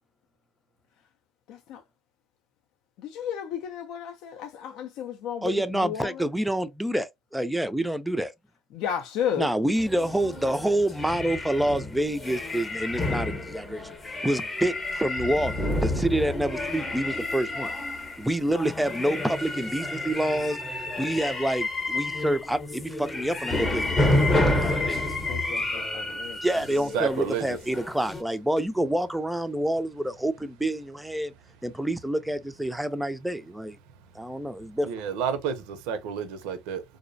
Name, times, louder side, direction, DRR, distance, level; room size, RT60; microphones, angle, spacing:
voice 1, 1.5-1.8 3.0-6.3 8.7-9.5 24.8-26.4, left 9 dB, 75° left, 0.4 m, -33 dB
voice 2, 5.4-8.3 9.4-14.0 14.2-17.7 18.2-25.2 26.4-31.3 31.6-33.8 34.2-34.9, right 1 dB, 5° right, 0.3 m, -27 dB
sound 1, 9.7-28.2, left 2 dB, 20° left, 0.7 m, -30 dB
voice 3, 26.9-27.6 34.8-36.8, right 7 dB, 85° right, 0.5 m, -30 dB
2.5 x 2.0 x 2.5 m
cardioid pair, 115°, 0 cm